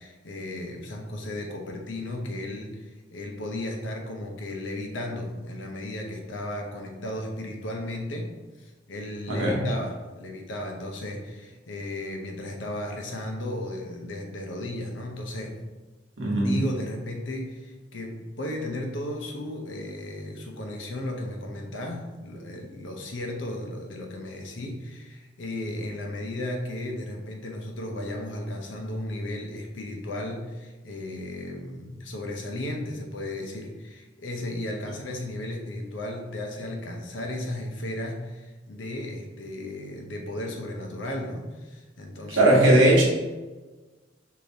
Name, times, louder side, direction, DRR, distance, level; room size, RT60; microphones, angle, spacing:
voice 1, 0.0-8.3 8.6-15.6 16.3-42.6, left 1 dB, 80° left, 2 dB, 0.7 m, -35 dB
voice 2, 9.3-9.7 16.2-16.6 42.3-43.0, right 1 dB, 85° right, -3 dB, 1.1 m, -19 dB
4.8 x 2.7 x 2.7 m, 1.2 s
head